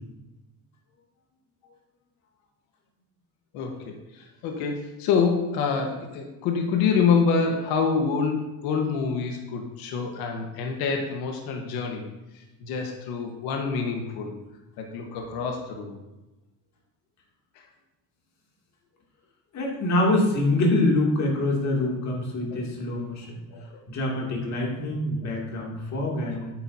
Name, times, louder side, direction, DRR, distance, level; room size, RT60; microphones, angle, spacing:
voice 1, 3.5-12.1 12.3-14.3 14.8-16.0 23.5-23.8 26.2-26.4, left 5 dB, 70° left, 2 dB, 1.5 m, -27 dB
voice 2, 19.5-23.4 23.9-26.5, left 2 dB, 45° left, -2 dB, 2.8 m, -25 dB
9.0 x 8.3 x 2.8 m, 1.0 s
cardioid pair, 120°, 38 cm